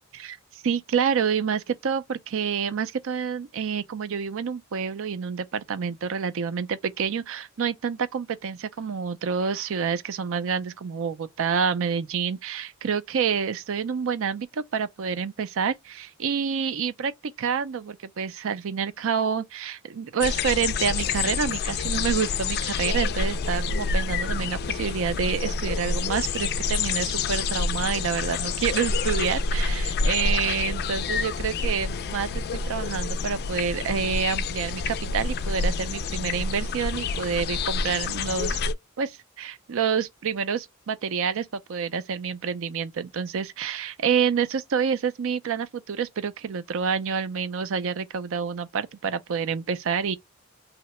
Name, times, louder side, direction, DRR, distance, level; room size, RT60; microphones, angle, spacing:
voice 1, 0.1-17.1 17.4-38.6 39.0-50.2, right 6 dB, 65° right, 0.4 m, -28 dB
sound 1, 20.2-38.7, left 4 dB, 50° left, 0.3 m, -28 dB
2.8 x 2.1 x 4.1 m
head